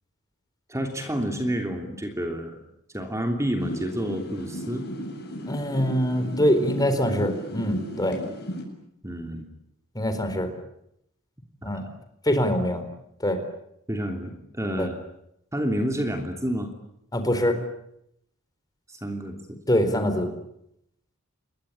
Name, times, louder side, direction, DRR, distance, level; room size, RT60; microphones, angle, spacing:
voice 1, 0.7-2.6 2.9-4.9 9.0-9.5 13.9-14.9 15.5-16.7 18.9-19.6 19.9-20.1, equal, 15° right, 4 dB, 3.1 m, -29 dB
sound 1, 3.6-8.6, equal, 50° left, 7.7 m, -35 dB
voice 2, 5.5-8.2 9.9-10.5 11.6-11.8 12.2-12.8 13.2-13.4 14.8-14.9 17.1-17.6 19.7-20.3, equal, 20° left, 8 dB, 4.1 m, -24 dB
28.0 x 22.0 x 8.9 m, 0.78 s
head